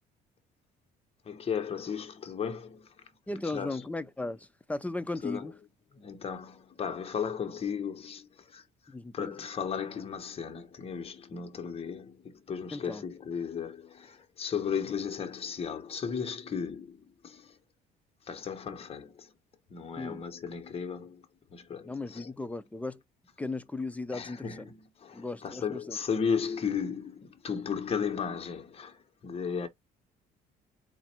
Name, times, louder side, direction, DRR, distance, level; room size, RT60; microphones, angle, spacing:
voice 1, 1.2-2.9 3.4-3.8 5.2-5.5 6.0-8.6 9.1-17.6 18.3-19.3 19.7-21.2 21.5-22.3 24.1-29.7, left 6 dB, 35° left, 1.1 m, -35 dB
voice 2, 3.3-5.5 8.9-9.4 12.7-13.0 20.0-20.3 21.8-23.0 23.4-24.7 25.1-26.0, left 2 dB, 10° left, 0.4 m, -36 dB
4.1 x 2.5 x 4.4 m
cardioid pair, 110°, 17 cm